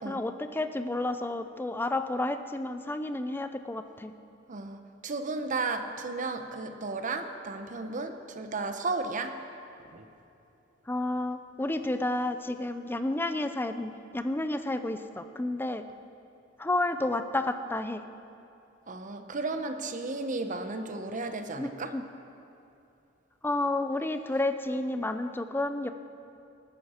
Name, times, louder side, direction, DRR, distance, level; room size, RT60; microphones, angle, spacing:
voice 1, 0.0-4.1 10.9-15.8 16.6-18.0 21.6-22.0 23.4-25.9, left 2 dB, 10° left, 9 dB, 0.5 m, -31 dB
voice 2, 4.5-9.4 9.9-10.1 18.9-21.9, right 3 dB, 40° right, 7 dB, 0.8 m, -34 dB
19.5 x 9.6 x 4.3 m, 2.7 s
head